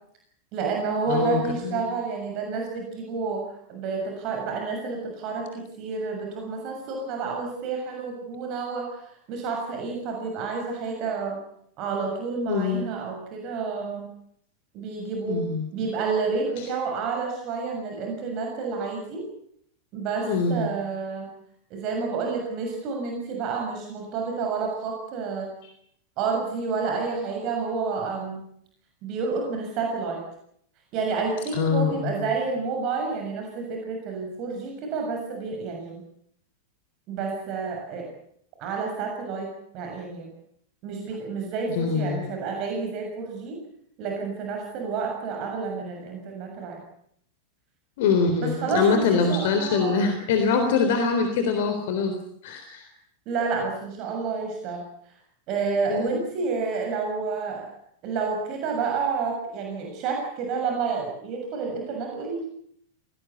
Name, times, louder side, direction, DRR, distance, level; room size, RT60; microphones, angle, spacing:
voice 1, 0.5-3.4 3.7-5.5 5.8-9.0 9.3-11.4 11.8-14.1 14.7-15.4 15.7-19.2 19.9-21.3 21.7-25.5 26.2-28.4 29.0-30.2 30.9-36.0 37.1-38.1 38.6-40.3 40.8-43.6 44.0-46.8 48.4-50.0 53.2-54.8 55.5-57.7 58.0-62.5, right 4 dB, 40° right, 1 dB, 6.8 m, -29 dB
voice 2, 1.1-1.8 12.5-12.9 15.3-15.7 16.6-16.7 20.3-20.7 31.5-32.3 41.7-42.3 48.0-52.1 52.4-52.9 55.9-56.2, left 5 dB, 50° left, 6 dB, 3.7 m, -24 dB
24.0 x 19.0 x 8.5 m, 0.68 s
figure-of-eight pair, 90°, 0 cm